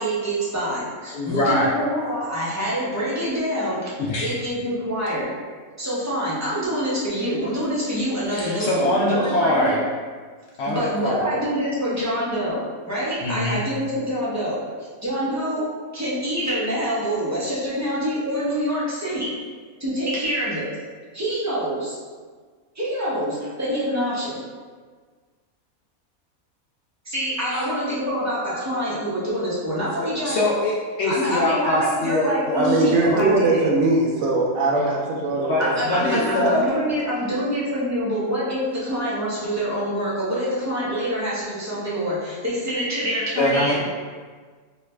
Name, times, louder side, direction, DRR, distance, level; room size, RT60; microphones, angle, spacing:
voice 1, 0.0-3.9 4.2-5.3 5.8-9.7 10.6-14.6 15.0-15.6 15.9-19.3 19.8-20.7 21.1-22.0 22.7-24.4 27.0-30.3 31.0-33.7 35.6-43.8, equal, 20° right, -9 dB, 0.5 m, -26 dB
voice 2, 1.1-1.7 4.0-4.3 8.3-9.8 10.6-11.4 13.2-13.6 27.5-27.6 30.2-33.0 35.5-36.6 43.4-43.8, left 1 dB, 65° left, -5 dB, 0.7 m, -23 dB
voice 3, 32.5-35.7 36.0-36.6 37.3-37.4, right 2 dB, 75° right, -3 dB, 1.0 m, -21 dB
3.1 x 2.2 x 3.1 m, 1.5 s
omnidirectional pair, 1.4 m